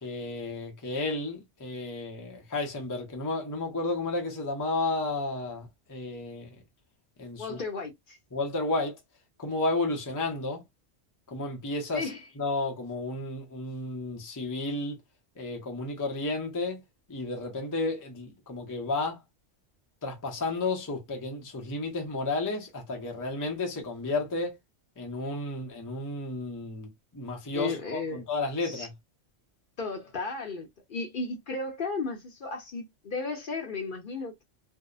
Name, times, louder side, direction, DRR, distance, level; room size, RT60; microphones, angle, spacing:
voice 1, 0.0-6.6 7.2-7.6 8.3-9.0 9.4-10.6 11.3-12.1 12.3-15.0 15.4-16.8 17.1-19.2 20.0-24.6 25.0-28.9, left 2 dB, 20° left, 0.5 m, -32 dB
voice 2, 7.4-8.2 11.9-12.2 27.5-28.2 28.6-28.9 29.8-34.4, left 3 dB, 50° left, 0.8 m, -34 dB
2.6 x 2.0 x 2.3 m
omnidirectional pair, 1.2 m